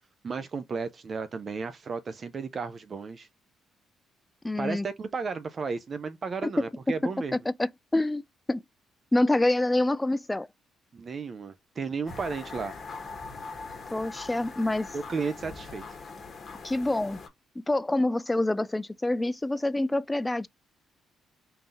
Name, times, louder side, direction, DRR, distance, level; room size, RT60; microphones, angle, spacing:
voice 1, 0.2-3.3 4.6-7.4 10.9-12.8 14.9-15.8, right 5 dB, 40° right, 0.5 m, -34 dB
voice 2, 4.4-4.9 6.4-6.5 7.6-8.2 8.5-8.6 9.1-10.5 13.9-14.9 16.6-17.2 17.7-20.5, left 2 dB, 15° left, 0.3 m, -26 dB
sound 1, 12.1-17.3, left 4 dB, 45° left, 1.3 m, -42 dB
3.9 x 2.8 x 3.7 m
cardioid pair, 90°, 0 cm